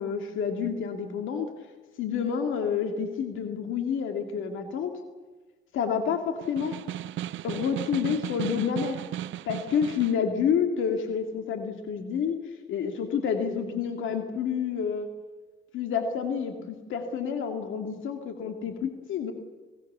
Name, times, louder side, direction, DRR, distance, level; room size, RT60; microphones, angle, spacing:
voice 1, 0.0-1.5 2.0-4.9 5.7-6.8 7.4-9.0 9.5-12.4 12.7-15.1 15.7-19.3, left 7 dB, 80° left, 5 dB, 2.5 m, -29 dB
Snare drum, 6.4-10.3, right 12 dB, 75° right, 0.7 m, -35 dB
27.0 x 18.5 x 6.9 m, 1.3 s
cardioid pair, 90°, 20 cm